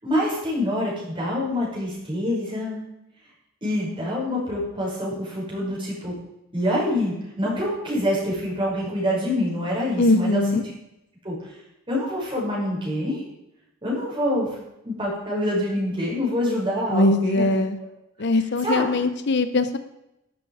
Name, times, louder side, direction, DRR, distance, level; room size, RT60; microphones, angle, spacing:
voice 1, 0.0-2.8 3.6-6.1 6.5-10.6 11.2-11.5 11.9-13.2 13.8-14.6 14.8-17.5 18.6-18.8, left 1 dB, 25° right, -5 dB, 5.9 m, -26 dB
voice 2, 10.0-10.6 16.9-17.8 18.2-19.8, left 2 dB, 55° left, 11 dB, 0.7 m, -21 dB
12.5 x 11.5 x 4.9 m, 0.87 s
head